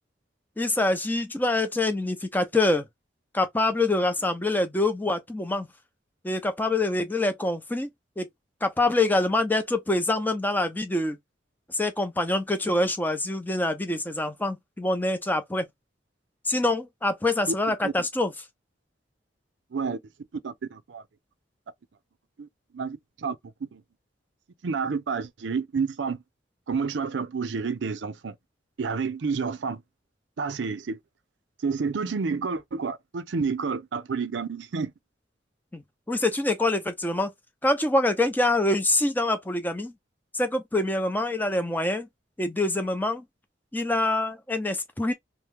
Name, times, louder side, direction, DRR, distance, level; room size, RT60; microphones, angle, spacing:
voice 1, 0.6-2.9 3.3-5.7 6.2-7.9 8.2-8.3 8.6-11.2 11.7-15.7 16.5-18.3 35.7-35.8 36.1-37.3 37.6-39.9 40.3-42.1 42.4-43.3 43.7-45.1, left 2 dB, 10° left, 0.6 m, -25 dB
voice 2, 20.4-21.0 22.4-22.5 22.7-23.4 23.7-23.8 24.6-26.2 26.7-28.3 28.8-29.8 30.4-31.0 31.6-34.9, right 5 dB, 80° right, 0.5 m, -29 dB
2.9 x 2.1 x 3.4 m
head